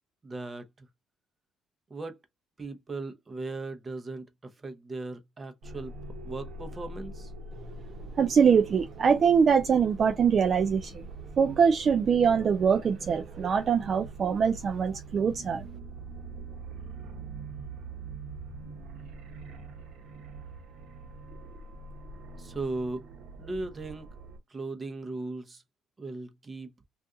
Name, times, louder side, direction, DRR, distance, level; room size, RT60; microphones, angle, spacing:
voice 1, 0.2-0.9 1.9-2.2 2.6-7.3 22.4-23.1 23.4-24.1 24.5-25.6 26.0-26.7, right 2 dB, 30° right, 0.8 m, -38 dB
sound 1, 5.6-24.4, right 3 dB, 75° right, 0.9 m, -43 dB
voice 2, 8.2-11.0 11.4-15.6, right 6 dB, 45° right, 0.4 m, -23 dB
2.5 x 2.4 x 3.6 m
supercardioid pair, 80°, 0 cm